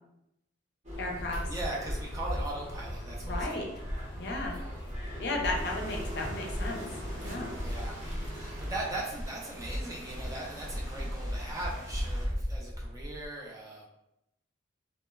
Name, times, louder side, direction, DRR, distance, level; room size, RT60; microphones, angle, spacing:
sound 1, 0.8-9.0, equal, 40° right, 0.7 m, -40 dB
sound 2, 0.9-13.3, equal, 65° right, 1.2 m, -37 dB
voice 1, 1.0-1.4 3.2-3.7 4.2-4.6 5.2-6.8 7.2-7.5, left 2 dB, 60° left, 0 dB, 0.5 m, -34 dB
voice 2, 1.5-3.7 4.6-4.8 7.6-8.0 8.3-13.8, right 2 dB, 15° right, -3 dB, 0.3 m, -39 dB
sound 3, 5.5-12.3, right 1 dB, 85° right, 0.8 m, -49 dB
2.9 x 2.0 x 2.2 m, 0.85 s
head